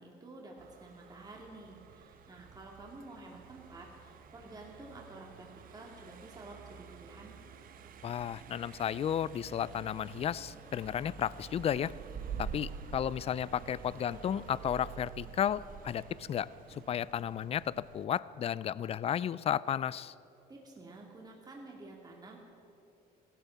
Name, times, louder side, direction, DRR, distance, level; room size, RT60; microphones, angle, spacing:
voice 1, 0.0-7.3 20.5-22.4, right 2 dB, 25° right, -1 dB, 2.3 m, -50 dB
Car passing by, 0.6-18.1, right 7 dB, 55° right, 1.0 m, -48 dB
voice 2, 8.0-11.9 12.4-20.1, left 9 dB, 35° left, 20 dB, 0.4 m, -33 dB
15.5 x 12.0 x 7.3 m, 2.9 s
cardioid pair, 110°, 17 cm